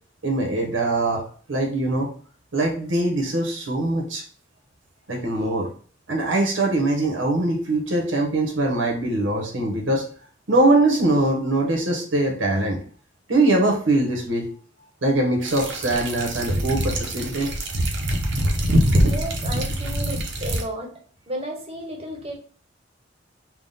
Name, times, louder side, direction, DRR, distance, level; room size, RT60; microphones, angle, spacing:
voice 1, 0.2-2.1 2.5-4.2 5.1-5.7 6.1-10.1 10.5-12.8 13.3-14.5 15.0-17.5, right 2 dB, 85° right, 1 dB, 1.1 m, -22 dB
sound 1, 15.4-20.6, equal, 65° right, 0.7 m, -23 dB
voice 2, 19.0-21.0 21.3-22.3, right 1 dB, 30° right, 1 dB, 0.9 m, -33 dB
3.6 x 2.4 x 3.9 m, 0.43 s
head